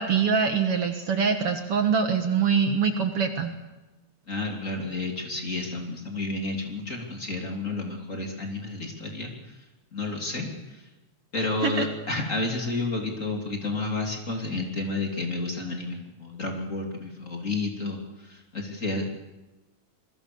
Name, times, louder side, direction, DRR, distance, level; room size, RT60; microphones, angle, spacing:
voice 1, 0.0-3.5 11.6-11.9, right 6 dB, 55° right, 6 dB, 2.2 m, -24 dB
voice 2, 4.3-9.6 9.9-10.8 11.3-19.1, left 2 dB, 25° left, 2 dB, 3.3 m, -31 dB
27.0 x 21.5 x 7.0 m, 1.1 s
omnidirectional pair, 3.4 m